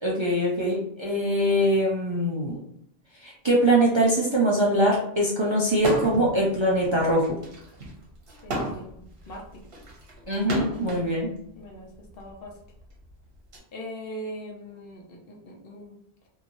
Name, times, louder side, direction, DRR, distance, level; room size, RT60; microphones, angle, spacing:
voice 1, 0.0-2.6 3.2-7.2 10.3-11.3, right 1 dB, 35° right, -4 dB, 0.5 m, -23 dB
sound 1, 5.8-6.3 6.7-11.1 11.9-13.6, equal, 65° right, 1.1 m, -33 dB
voice 2, 8.4-9.6 11.6-12.5 13.7-16.0, equal, 65° left, 0 dB, 0.9 m, -41 dB
3.0 x 2.7 x 2.6 m, 0.70 s
omnidirectional pair, 1.1 m